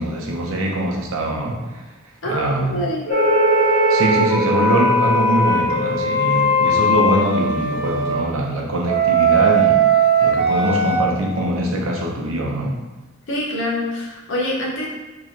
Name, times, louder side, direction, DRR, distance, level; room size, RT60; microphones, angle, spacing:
voice 1, 0.0-1.6 2.3-2.8 3.9-12.8, right 1 dB, 75° right, 0 dB, 0.7 m, -22 dB
voice 2, 2.2-3.1 13.3-14.9, left 1 dB, 60° left, -3 dB, 0.8 m, -25 dB
sound 1, 3.1-8.4, left 1 dB, 35° left, 0.9 m, -24 dB
sound 2, 3.1-8.1 8.8-11.0, right 2 dB, 40° right, 0.9 m, -19 dB
3.1 x 2.9 x 3.7 m, 1.2 s
head